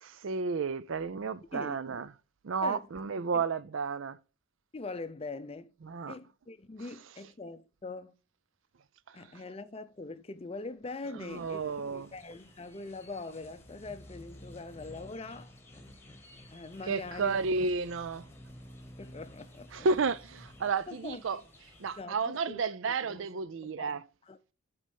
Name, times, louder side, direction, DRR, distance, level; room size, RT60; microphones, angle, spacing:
voice 1, 0.0-2.1 2.4-4.2 5.8-6.2 11.1-12.1 16.9-18.3 19.7-21.4 21.8-24.0, right 4 dB, 60° right, 0.4 m, -32 dB
voice 2, 4.7-5.7 6.1-8.1 9.1-15.5 16.5-17.4 19.0-19.9 20.9-21.4 22.0-22.6 23.0-23.3 23.8-24.0 24.3-24.4, left 3 dB, 25° left, 0.5 m, -42 dB
sound 1, 11.3-22.0, equal, 10° left, 1.2 m, -52 dB
8.4 x 4.3 x 5.3 m
head